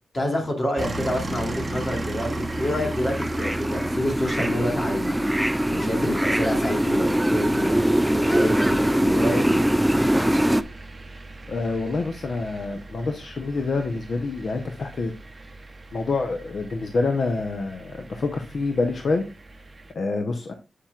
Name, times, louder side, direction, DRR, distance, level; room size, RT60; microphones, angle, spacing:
voice 1, 0.1-5.2 5.7-7.8 8.1-9.6, left 1 dB, 35° left, 1 dB, 2.9 m, -28 dB
sound 1, 0.8-19.9, right 2 dB, 30° right, 0.9 m, -38 dB
sound 2, 1.3-10.6, equal, 5° right, 0.4 m, -23 dB
voice 2, 11.5-15.1 15.9-19.2 19.9-20.5, left 3 dB, 60° left, 5 dB, 0.9 m, -27 dB
8.5 x 7.3 x 2.4 m, 0.30 s
wide cardioid pair, 105°, 0 cm